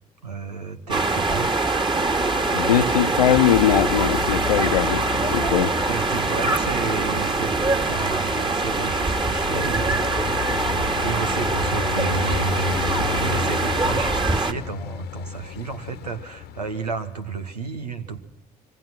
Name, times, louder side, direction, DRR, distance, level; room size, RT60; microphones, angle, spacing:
voice 1, 0.2-1.7 5.9-10.1 11.0-12.8 13.2-18.2, right 5 dB, 85° right, 7 dB, 2.0 m, -32 dB
sound 1, 0.9-14.5, right 3 dB, 25° right, 2.7 m, -23 dB
Traffic noise roadway noise, 1.8-17.3, left 12 dB, 55° left, 1.3 m, -34 dB
voice 2, 2.5-5.7, left 10 dB, 80° left, 11 dB, 1.2 m, -21 dB
26.5 x 24.5 x 6.1 m, 0.75 s
figure-of-eight pair, 55°, 20 cm